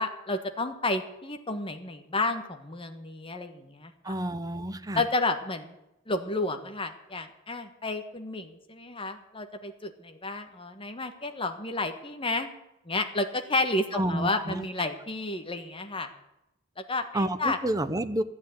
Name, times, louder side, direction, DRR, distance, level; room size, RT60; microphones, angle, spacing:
voice 1, 0.0-4.1 4.9-5.7 6.1-12.5 12.8-16.1 16.9-17.6, left 2 dB, 25° left, 6 dB, 1.5 m, -31 dB
voice 2, 4.0-5.0 13.9-14.7 17.1-18.2, right 1 dB, 15° right, 11 dB, 0.7 m, -29 dB
13.0 x 9.5 x 9.5 m, 0.90 s
head